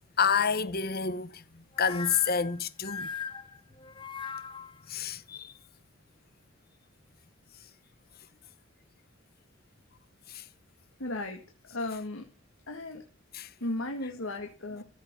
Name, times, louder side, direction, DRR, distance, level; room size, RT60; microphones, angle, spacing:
voice 1, 0.2-3.1 4.9-5.5 10.3-10.4 13.3-13.5, left 6 dB, 50° left, 1.1 m, -29 dB
sound 1, 1.7-4.8, left 6 dB, 25° left, 1.0 m, -39 dB
voice 2, 11.0-11.4 11.7-12.3 12.7-13.0 13.6-14.8, left 2 dB, 85° left, 2.0 m, -35 dB
14.5 x 7.9 x 9.5 m
head